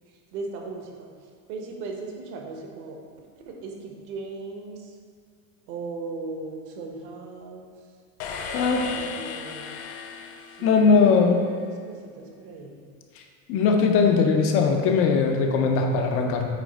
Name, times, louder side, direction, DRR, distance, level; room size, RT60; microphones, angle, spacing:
voice 1, 0.3-1.1 1.5-5.0 5.7-7.7 8.9-9.8 10.6-12.7, right 3 dB, 50° right, 1 dB, 1.1 m, -38 dB
sound 1, 8.2-11.4, left 6 dB, 55° left, 0.8 m, -36 dB
voice 2, 8.5-8.9 10.6-11.4 13.2-13.3 13.5-16.5, left 5 dB, 30° left, 3 dB, 0.4 m, -20 dB
8.4 x 3.1 x 5.2 m, 2.1 s
cardioid pair, 165°, 47 cm